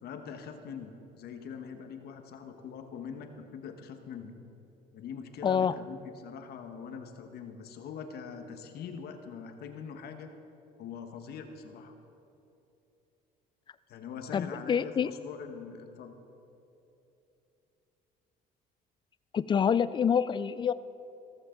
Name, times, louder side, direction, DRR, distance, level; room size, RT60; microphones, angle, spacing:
voice 1, 0.0-4.4 4.9-10.3 10.8-12.0 13.9-16.1, left 6 dB, 70° left, 6 dB, 1.3 m, -43 dB
voice 2, 5.4-5.7 14.3-15.1 19.3-20.7, left 7 dB, 30° left, 16 dB, 0.4 m, -26 dB
15.5 x 14.0 x 3.8 m, 2.9 s
cardioid pair, 110°, 17 cm